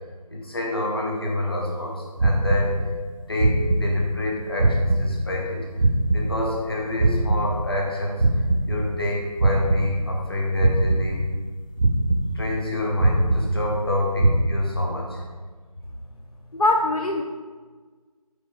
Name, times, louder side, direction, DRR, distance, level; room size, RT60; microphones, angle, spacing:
voice 1, 0.3-2.7 3.3-5.6 6.1-8.2 8.6-11.2 12.3-15.2, left 1 dB, 40° left, -2 dB, 1.2 m, -27 dB
sound 1, 2.2-3.1 3.4-4.3 4.6-6.7 7.0-9.1 9.4-10.3 10.6-11.5 11.8-12.7 13.0-13.9 14.2-14.4, right 2 dB, 55° right, 0.5 m, -22 dB
voice 2, 16.5-17.2, left 2 dB, 70° left, 3 dB, 0.5 m, -21 dB
5.1 x 4.0 x 4.6 m, 1.4 s
figure-of-eight pair, 170°, 20 cm